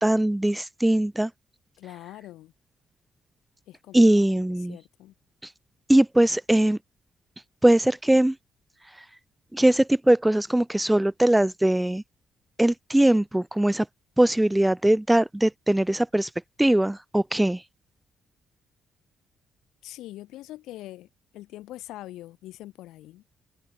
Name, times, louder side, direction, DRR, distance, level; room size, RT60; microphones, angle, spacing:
voice 1, 0.0-1.3 3.9-4.8 5.9-6.8 7.6-8.3 9.5-12.0 12.6-13.8 14.2-16.3 16.6-17.6, right 1 dB, 10° right, 2.4 m, -21 dB
voice 2, 1.8-2.5 3.7-5.1 19.8-21.1 21.3-23.3, left 15 dB, 90° left, 6.9 m, -43 dB
open air
cardioid pair, 90°, 0 cm